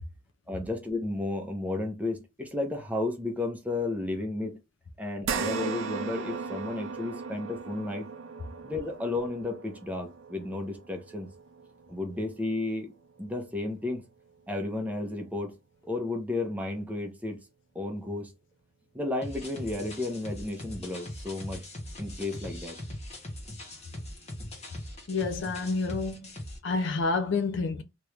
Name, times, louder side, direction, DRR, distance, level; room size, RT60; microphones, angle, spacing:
voice 1, 0.5-4.6 5.0-8.1 8.6-11.3 11.9-12.9 13.2-14.0 14.5-15.5 15.8-17.4 17.7-18.3 18.9-21.6 22.0-22.8, left 2 dB, 10° right, 0.7 m, -33 dB
sound 1, 5.2-13.9 14.3-14.4 15.9-16.0, right 5 dB, 75° right, 0.5 m, -38 dB
sound 2, 19.2-26.6, left 1 dB, 35° left, 0.9 m, -41 dB
voice 2, 25.1-26.3 26.6-27.8, left 3 dB, 65° left, 0.5 m, -29 dB
2.9 x 2.5 x 3.2 m
head